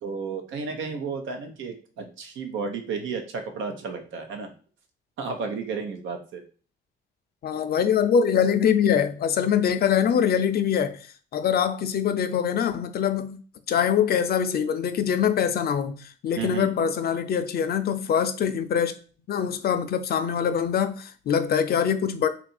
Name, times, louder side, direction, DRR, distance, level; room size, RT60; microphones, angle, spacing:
voice 1, 0.0-4.5 5.2-6.4 16.3-16.7, right 5 dB, 80° right, 0.8 m, -32 dB
voice 2, 7.4-11.1 11.3-13.4 13.7-18.9 19.3-22.3, left 8 dB, 50° left, 0.5 m, -23 dB
2.7 x 2.5 x 4.2 m
cardioid pair, 90°, 20 cm